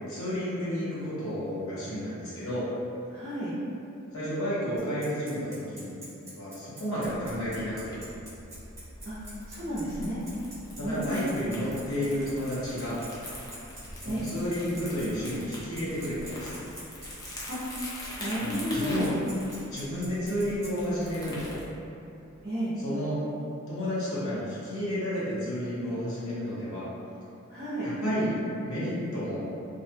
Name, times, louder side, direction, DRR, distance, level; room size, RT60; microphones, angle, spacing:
voice 1, 0.0-2.7 4.1-6.0 6.3-7.7 10.8-13.0 14.0-16.6 18.4-19.2 19.7-21.6 22.8-23.2 23.7-26.9 27.8-28.4 28.6-29.5, equal, 70° left, -10 dB, 0.8 m, -31 dB
voice 2, 3.1-3.5 9.0-9.2 9.5-10.2 10.8-11.2 14.1-14.3 17.5-17.6 18.2-19.2 22.4-22.7 27.5-27.9, equal, 45° right, -10 dB, 0.6 m, -31 dB
Bicycle, 4.8-20.7, right 1 dB, 15° right, 1.0 m, -46 dB
Crumpling crinkling, 7.0-21.6, left 1 dB, 20° left, 0.4 m, -43 dB
2.5 x 2.2 x 2.7 m, 2.7 s
head